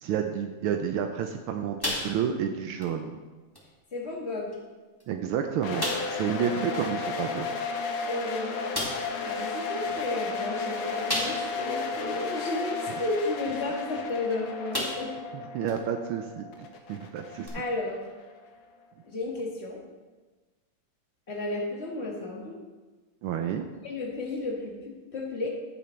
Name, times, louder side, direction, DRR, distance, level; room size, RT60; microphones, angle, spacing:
voice 1, 0.0-3.2 5.1-7.5 15.5-17.5 23.2-23.7, right 8 dB, 80° right, 5 dB, 1.5 m, -30 dB
sound 1, 1.8-2.5 2.8-3.0 3.5-3.7 4.5-4.6 5.0-5.1 5.8-6.2 7.9-8.0 8.7-9.1 11.1-11.7 12.2-12.3 14.1-14.3 14.7-15.2 15.7-15.8 17.4-17.5, left 1 dB, 10° left, 1.9 m, -32 dB
voice 2, 3.9-4.6 6.2-6.5 8.0-8.6 9.2-15.1 17.5-18.1 19.1-19.8 21.3-22.6 23.8-25.5, left 2 dB, 30° left, -2 dB, 1.9 m, -33 dB
sound 2, 5.6-18.5, left 4 dB, 80° left, 1.8 m, -34 dB
15.0 x 7.1 x 3.2 m, 1.3 s
omnidirectional pair, 2.3 m